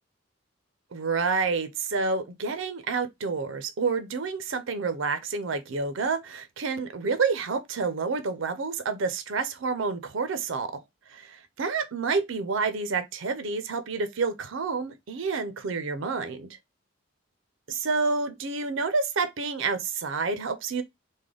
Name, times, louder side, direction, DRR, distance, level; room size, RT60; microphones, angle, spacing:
voice 1, 0.9-10.7 11.1-16.5 17.7-20.8, right 4 dB, 70° right, 0.5 m, -29 dB
3.3 x 2.1 x 3.7 m
head